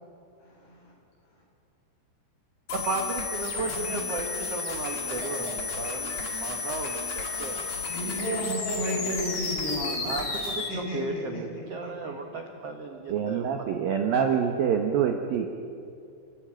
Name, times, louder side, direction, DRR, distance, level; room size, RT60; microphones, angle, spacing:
voice 1, 0.4-0.9 3.7-4.0 7.9-10.1 10.7-11.6, equal, 70° left, -3 dB, 10.0 m, -33 dB
sound 1, 2.7-10.7, left 4 dB, 35° left, 3.6 m, -32 dB
voice 2, 2.7-7.7 10.0-13.7, right 3 dB, 85° right, 3 dB, 1.3 m, -35 dB
voice 3, 13.1-15.5, right 7 dB, 70° right, 4 dB, 2.4 m, -25 dB
30.0 x 15.5 x 9.0 m, 2.5 s
omnidirectional pair, 5.5 m